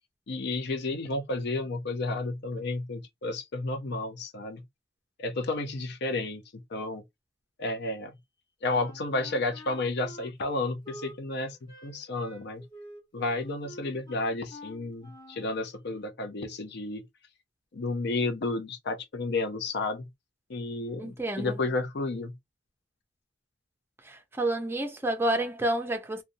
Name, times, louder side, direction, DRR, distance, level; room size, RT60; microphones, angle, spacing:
voice 1, 0.3-4.6 5.2-7.0 7.6-8.1 8.6-12.7 13.1-17.1 17.7-20.1 20.5-22.4, left 2 dB, 60° left, 0.5 m, -32 dB
Wind instrument woodwind instrument, 8.7-15.5, equal, 25° left, 1.5 m, -48 dB
voice 2, 21.0-21.6 24.0-26.2, right 1 dB, 10° right, 0.5 m, -29 dB
2.6 x 2.2 x 2.6 m
head